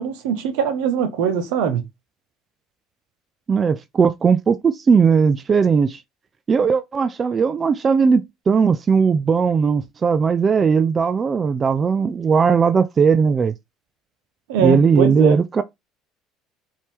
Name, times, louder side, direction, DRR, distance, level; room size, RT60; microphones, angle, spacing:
voice 1, 0.0-1.8 14.5-15.4, right 7 dB, 75° right, 1.1 m, -22 dB
voice 2, 3.5-6.0 6.5-13.5 14.6-15.6, right 5 dB, 35° right, 0.4 m, -18 dB
4.5 x 2.9 x 3.5 m
hypercardioid pair, 80°, 0 cm